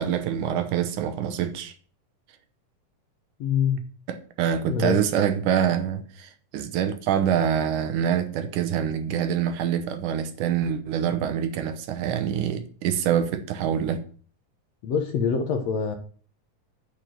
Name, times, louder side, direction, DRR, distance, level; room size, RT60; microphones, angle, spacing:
voice 1, 0.0-1.8 4.1-14.0, right 9 dB, 75° right, 2.3 m, -25 dB
voice 2, 3.4-3.8 4.7-5.0 14.8-16.0, left 6 dB, 65° left, 1.9 m, -25 dB
9.2 x 4.6 x 7.6 m
omnidirectional pair, 3.8 m